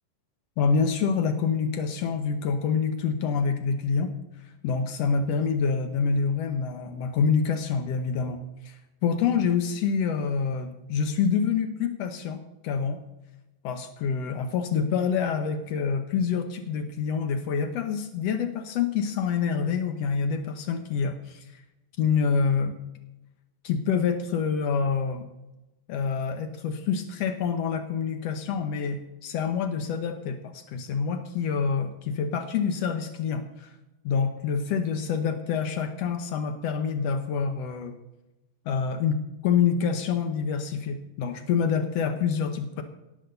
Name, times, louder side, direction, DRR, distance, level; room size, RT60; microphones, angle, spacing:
voice 1, 0.6-4.1 4.6-13.0 13.6-21.6 22.0-22.7 23.6-25.3 25.9-33.7 34.0-37.9 38.6-42.8, left 6 dB, 80° left, 7 dB, 1.4 m, -27 dB
18.0 x 6.4 x 6.7 m, 0.97 s
omnidirectional pair, 4.1 m